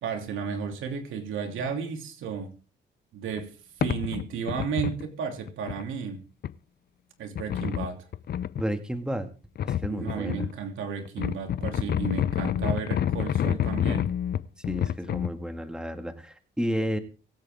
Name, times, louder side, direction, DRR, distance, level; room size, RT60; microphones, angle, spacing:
voice 1, 0.0-2.5 3.1-6.2 7.2-8.1 9.8-14.1, right 6 dB, 80° right, 4 dB, 2.9 m, -33 dB
sound 1, 3.4-3.5 3.8-5.1 5.5-5.8 6.4-6.5 7.3-8.6 9.6-10.5 11.0-15.3, left 10 dB, 55° left, 0.6 m, -28 dB
voice 2, 8.6-9.3 9.6-10.4 11.8-12.1 14.7-17.0, equal, 5° right, 6 dB, 2.0 m, -32 dB
24.0 x 8.5 x 3.7 m, 0.36 s
cardioid pair, 90°, 20 cm